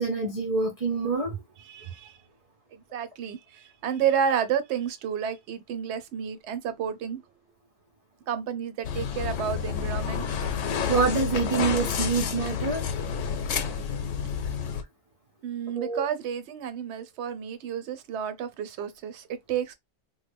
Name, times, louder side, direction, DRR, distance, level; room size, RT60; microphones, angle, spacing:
voice 1, 0.0-1.4 10.9-12.8 15.7-16.0, right 4 dB, 45° right, 0.5 m, -26 dB
voice 2, 1.7-2.2 2.7-7.2 8.3-10.2 15.4-19.7, right 8 dB, 65° right, 0.8 m, -31 dB
sound 1, 8.8-14.8, left 7 dB, 75° left, 1.0 m, -29 dB
3.1 x 2.0 x 3.3 m
omnidirectional pair, 1.3 m